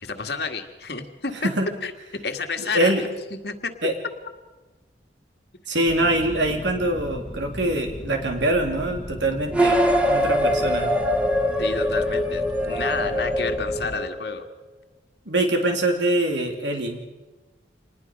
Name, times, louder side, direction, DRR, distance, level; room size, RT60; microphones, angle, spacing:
voice 1, 0.0-1.5 1.8-1.9 2.2-3.7 11.6-14.5, left 4 dB, 60° left, 5 dB, 1.8 m, -30 dB
voice 2, 2.6-3.0 3.8-3.9 5.7-9.8 10.1-10.9 15.3-17.1, right 1 dB, 80° right, 3 dB, 3.3 m, -24 dB
sound 1, 5.9-14.0, equal, 25° left, 1.4 m, -37 dB
sound 2, 9.5-14.4, equal, 5° right, 1.8 m, -23 dB
26.5 x 20.5 x 5.3 m, 1.1 s
head